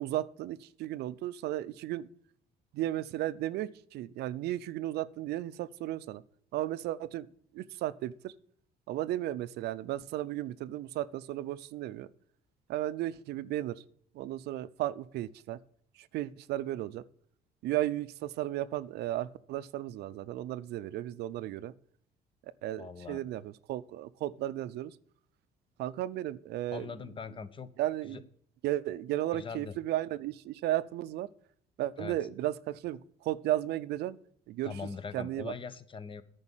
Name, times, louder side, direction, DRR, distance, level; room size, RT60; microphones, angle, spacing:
voice 1, 0.0-2.1 2.7-6.2 6.5-7.3 7.5-8.3 8.9-12.1 12.7-13.8 14.1-15.6 16.0-17.1 17.6-21.7 22.6-25.0 25.8-26.9 27.8-28.2 28.6-31.3 31.8-34.2 34.5-34.8 35.1-35.5, right 14 dB, 75° right, 16 dB, 0.5 m, -34 dB
voice 2, 22.8-23.2 26.7-27.7 28.1-28.2 29.3-29.8 32.0-32.2 34.6-36.2, left 5 dB, 30° left, 14 dB, 0.8 m, -41 dB
9.7 x 5.4 x 7.2 m, 0.63 s
cardioid pair, 110°, 17 cm